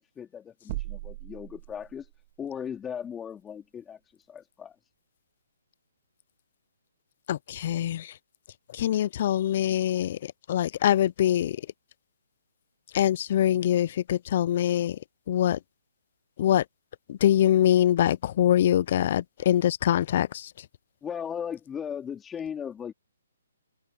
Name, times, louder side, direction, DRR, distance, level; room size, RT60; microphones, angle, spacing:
voice 1, 0.0-2.1 2.4-4.0 4.3-4.8 21.0-22.9, left 8 dB, 10° left, 3.8 m, -37 dB
sound 1, 0.7-2.3, right 18 dB, 35° right, 3.2 m, -38 dB
voice 2, 7.3-8.1 8.8-10.2 10.5-11.6 12.9-15.0 15.3-15.6 16.4-16.6 17.1-20.5, left 11 dB, 45° left, 0.5 m, -23 dB
hypercardioid pair, 155°, 0 cm